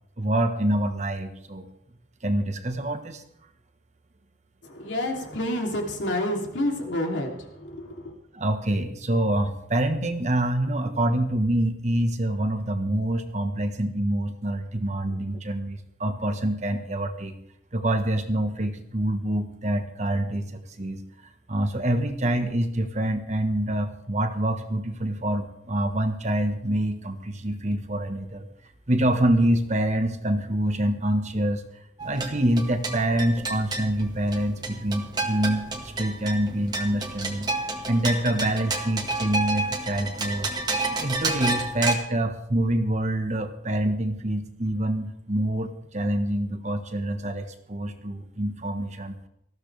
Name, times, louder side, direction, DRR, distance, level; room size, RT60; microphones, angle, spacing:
voice 1, 0.2-1.7 2.2-3.2 8.3-17.4 17.7-21.0 21.5-28.5 28.9-31.6 32.0-37.5 37.8-40.5 41.0-49.2, right 1 dB, 40° right, 7 dB, 1.3 m, -26 dB
voice 2, 4.6-8.1, left 1 dB, 80° left, 1 dB, 3.1 m, -29 dB
sound 1, 32.0-41.9, right 2 dB, 20° right, 1.7 m, -30 dB
19.0 x 14.5 x 3.4 m, 0.75 s
head